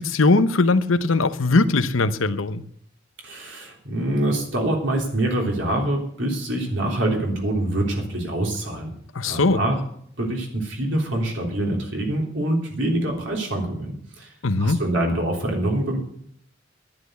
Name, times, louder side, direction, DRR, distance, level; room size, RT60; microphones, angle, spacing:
voice 1, 0.0-2.6 9.1-9.6 14.4-14.8, left 3 dB, 90° left, 12 dB, 1.0 m, -20 dB
voice 2, 3.2-8.9 9.3-9.8 10.2-14.3 14.6-16.0, right 1 dB, 65° right, 1 dB, 3.5 m, -25 dB
11.0 x 10.5 x 8.0 m, 0.64 s
head